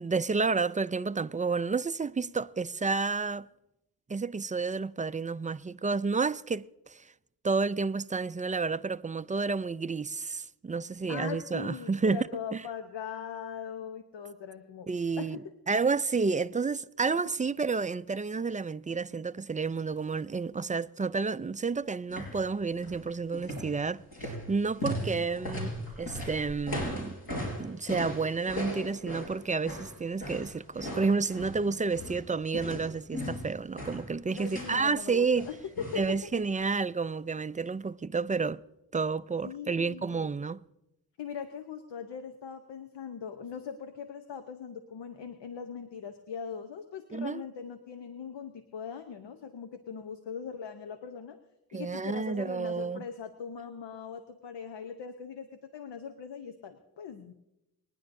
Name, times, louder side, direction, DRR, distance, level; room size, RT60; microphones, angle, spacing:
voice 1, 0.0-3.5 4.1-7.1 7.4-12.3 12.5-12.6 14.9-15.4 15.7-25.7 26.0-27.2 27.6-35.5 36.0-38.6 38.9-40.6 47.1-47.4 51.7-53.0, right 4 dB, 20° right, 0.4 m, -30 dB
voice 2, 11.1-14.9 15.2-15.5 17.2-17.3 25.1-25.6 34.3-36.3 39.4-40.3 41.2-51.4 51.7-57.3, left 7 dB, 80° left, 0.9 m, -40 dB
sound 1, 22.1-22.4 22.7-23.0 23.3-32.2 32.5-34.8 35.3-36.1 36.4-36.5, left 1 dB, 60° left, 4.9 m, -38 dB
26.5 x 10.0 x 2.6 m
supercardioid pair, 40°, 42 cm